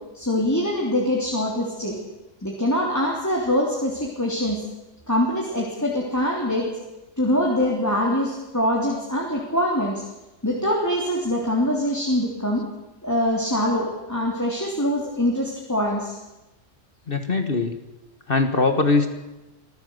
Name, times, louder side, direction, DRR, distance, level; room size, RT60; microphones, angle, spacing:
voice 1, 0.1-2.0 2.4-4.6 5.1-6.7 7.2-10.0 10.4-12.6 13.0-16.2, left 1 dB, 15° left, -3 dB, 3.2 m, -23 dB
voice 2, 17.1-17.7 18.3-19.1, left 3 dB, 45° left, 7 dB, 1.7 m, -21 dB
24.5 x 15.0 x 8.0 m, 1.0 s
omnidirectional pair, 1.3 m